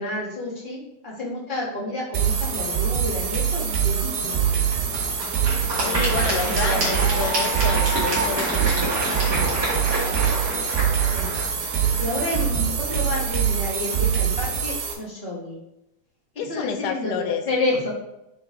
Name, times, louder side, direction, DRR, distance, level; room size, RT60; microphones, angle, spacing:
voice 1, 0.0-4.6 5.8-7.3 11.1-11.4 12.0-15.6 16.3-17.9, left 2 dB, 30° left, -6 dB, 0.9 m, -30 dB
sound 1, 2.1-14.9, right 8 dB, 85° right, 2.6 m, -24 dB
Applause / Crowd, 4.2-13.3, right 1 dB, 35° right, 1.9 m, -28 dB
voice 2, 5.8-9.7 16.4-17.5, left 7 dB, 85° left, 7 dB, 2.2 m, -30 dB
5.5 x 4.6 x 3.7 m, 0.86 s
omnidirectional pair, 3.7 m